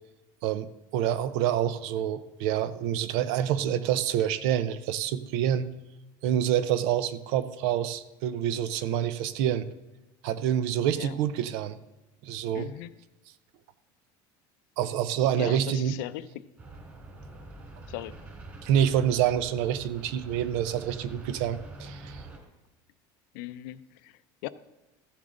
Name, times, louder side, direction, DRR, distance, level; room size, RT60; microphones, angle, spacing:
voice 1, 0.4-5.7 6.2-9.7 10.2-11.8 12.2-12.7 14.8-16.0 18.6-22.2, right 10 dB, 65° right, 14 dB, 0.7 m, -27 dB
voice 2, 12.5-12.9 15.4-16.3 17.9-18.2 23.3-24.5, left 15 dB, 70° left, 14 dB, 0.5 m, -38 dB
sound 1, 16.6-22.4, right 2 dB, 20° right, 3.2 m, -45 dB
14.5 x 7.1 x 3.8 m, 1.1 s
cardioid pair, 170°, 10 cm